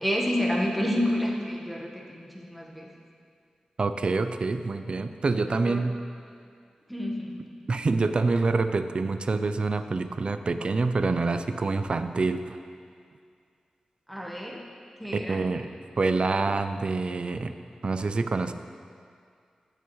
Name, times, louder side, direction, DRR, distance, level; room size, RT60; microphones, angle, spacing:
voice 1, 0.0-2.9 5.7-5.8 6.9-7.4 14.1-14.6 15.0-15.4, equal, ahead, -2 dB, 1.2 m, -29 dB
voice 2, 3.8-6.0 7.7-12.6 15.1-15.7 16.0-17.5 17.8-18.5, right 3 dB, 50° right, 9 dB, 0.4 m, -26 dB
16.5 x 7.0 x 3.1 m, 2.3 s
wide cardioid pair, 130°, 2 cm